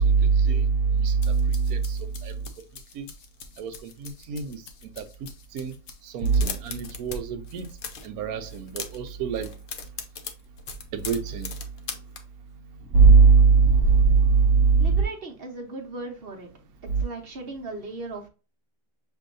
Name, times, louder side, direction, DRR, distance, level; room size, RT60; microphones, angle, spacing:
voice 1, 0.0-2.4 2.9-3.1 3.6-4.6 5.0-5.1 5.5-5.7 6.0-7.7 8.0-9.5 10.9-11.5 12.9-15.0 16.9-17.0, right 5 dB, 65° right, 1.1 m, -21 dB
sound 1, 1.0-6.3, left 5 dB, 60° left, 1.0 m, -48 dB
sound 2, 6.2-7.2 7.4-8.1 8.5-9.1 9.4-12.2, left 5 dB, 85° left, 0.4 m, -37 dB
voice 2, 14.8-16.5 17.0-18.3, right 2 dB, 45° right, 0.9 m, -37 dB
6.8 x 2.7 x 2.5 m
omnidirectional pair, 1.8 m